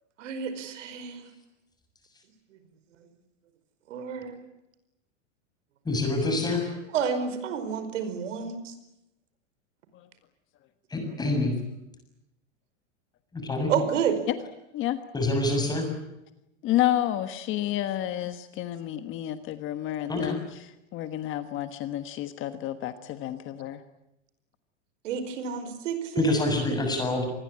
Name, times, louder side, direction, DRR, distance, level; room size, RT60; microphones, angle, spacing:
voice 1, 0.2-1.3 2.5-2.6 3.0-3.1 3.9-4.4 6.9-8.7 13.7-14.2 25.0-26.4, right 7 dB, 80° right, 11 dB, 5.0 m, -30 dB
voice 2, 5.9-6.7 10.9-11.5 13.3-13.7 15.1-15.9 20.1-20.4 26.2-27.3, left 2 dB, 10° left, 5 dB, 7.1 m, -26 dB
voice 3, 16.6-23.8, left 13 dB, 35° left, 10 dB, 1.4 m, -30 dB
27.0 x 20.5 x 8.8 m, 0.88 s
supercardioid pair, 150°, 37 cm